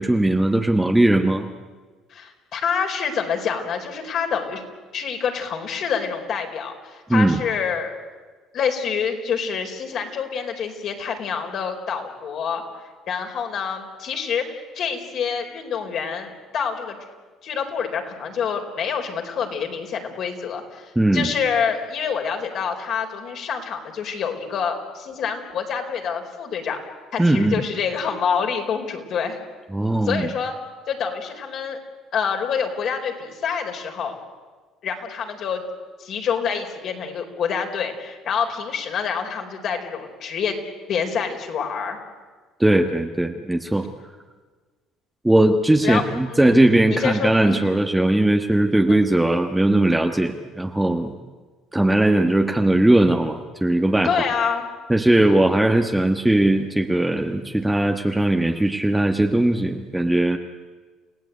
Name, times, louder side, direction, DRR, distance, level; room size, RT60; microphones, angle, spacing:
voice 1, 0.0-1.5 7.1-7.4 20.9-21.3 27.2-27.6 29.7-30.3 42.6-43.9 45.2-51.1 51.7-54.1 54.9-60.4, right 1 dB, 5° right, 4 dB, 1.3 m, -19 dB
voice 2, 2.1-4.6 4.9-8.0 8.5-12.6 13.1-17.0 17.4-26.8 27.1-29.4 30.0-30.5 30.9-31.8 32.1-34.2 34.8-35.6 36.0-40.6 40.9-42.0 45.8-46.0 46.3-47.6 48.9-49.0 54.0-54.7 55.1-55.3, left 6 dB, 55° left, 3 dB, 4.5 m, -27 dB
29.5 x 16.5 x 9.4 m, 1.4 s
cardioid pair, 110°, 0 cm